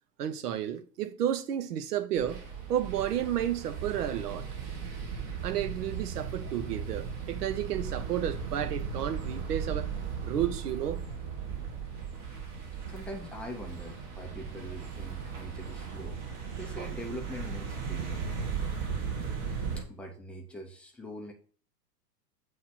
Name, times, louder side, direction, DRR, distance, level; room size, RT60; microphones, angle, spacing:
voice 1, 0.2-2.4 2.7-4.5 5.4-9.9 10.2-11.0, right 10 dB, 70° right, 0.8 m, -32 dB
sound 1, 2.2-19.8, right 6 dB, 40° right, 1.8 m, -37 dB
voice 2, 12.9-16.2 16.6-18.2 19.8-21.3, equal, 5° left, 0.4 m, -43 dB
7.4 x 3.1 x 5.8 m
hypercardioid pair, 115°, 48 cm